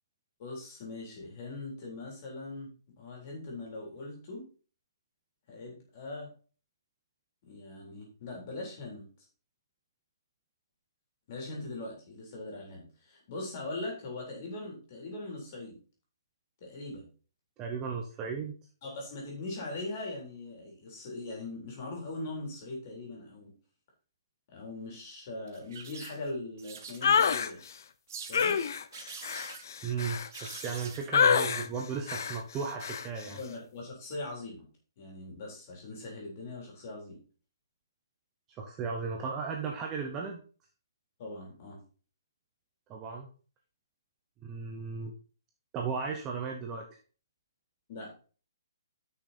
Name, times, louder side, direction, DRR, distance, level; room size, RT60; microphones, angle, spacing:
voice 1, 0.4-2.7 3.0-4.4 5.5-6.3 7.4-9.1 11.3-15.8 16.6-17.1 18.8-23.5 24.5-27.6 28.3-28.6 33.3-34.7 35.0-37.2 41.2-41.8 47.9-48.1, left 2 dB, 30° left, -1 dB, 3.7 m, -41 dB
voice 2, 17.6-18.5 29.8-33.4 38.6-40.4 42.9-43.3 44.4-45.1 45.7-46.8, right 5 dB, 15° right, 1 dB, 0.8 m, -35 dB
sound 1, 25.5-26.3 26.6-27.5 28.1-28.6 28.9-29.6 30.3-31.4 32.7-32.8, right 6 dB, 40° right, 1.4 m, -45 dB
sound 2, 27.0-27.5 28.3-30.8 31.1-31.7 32.1-32.4 32.8-33.1, left 7 dB, 50° left, 0.7 m, -27 dB
8.9 x 6.2 x 4.3 m, 0.38 s
hypercardioid pair, 175°, 2 cm